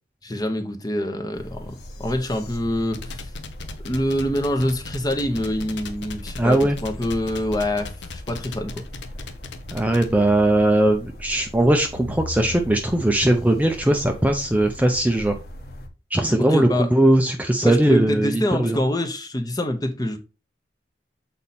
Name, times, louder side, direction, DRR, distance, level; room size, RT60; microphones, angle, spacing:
voice 1, 0.2-3.3 3.8-8.8 16.4-16.9 17.6-20.2, left 1 dB, 20° left, 0.9 m, -25 dB
sound 1, 1.3-15.9, left 1 dB, 60° left, 1.3 m, -38 dB
sound 2, 2.8-10.1, left 3 dB, 75° left, 0.9 m, -38 dB
voice 2, 6.4-6.8 9.7-15.4 16.1-18.8, right 1 dB, 10° right, 0.5 m, -19 dB
7.0 x 4.2 x 4.2 m
head